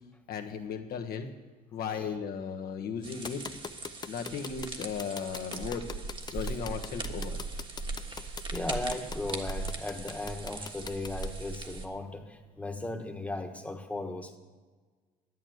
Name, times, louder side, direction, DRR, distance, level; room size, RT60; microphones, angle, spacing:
voice 1, 0.3-1.3 1.7-3.4 4.0-5.8 6.3-7.4, left 6 dB, 65° left, 5 dB, 1.4 m, -36 dB
sound 1, 3.0-11.9, right 3 dB, 30° right, 1.4 m, -39 dB
sound 2, 3.2-11.3, left 5 dB, 25° left, 0.5 m, -41 dB
voice 2, 7.9-14.4, left 2 dB, 10° left, 5 dB, 1.4 m, -37 dB
11.0 x 8.9 x 7.9 m, 1.4 s
cardioid pair, 110°, 17 cm